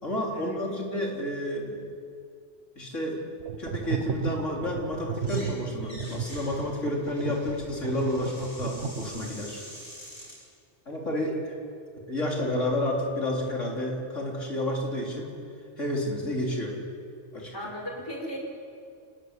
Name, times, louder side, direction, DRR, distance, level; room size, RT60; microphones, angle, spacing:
voice 1, 0.0-1.9 2.8-3.2 3.6-9.6 10.9-11.5 12.1-15.3 15.8-16.8 17.3-17.6, left 1 dB, 85° left, -2 dB, 4.4 m, -30 dB
sound 1, 3.4-9.5, right 6 dB, 65° right, 1.4 m, -34 dB
sound 2, 5.1-5.5 5.8-10.4, equal, 50° left, 8.3 m, -46 dB
voice 2, 17.5-18.4, equal, 20° left, -1 dB, 5.4 m, -36 dB
28.0 x 13.0 x 9.8 m, 2.3 s
omnidirectional pair, 1.2 m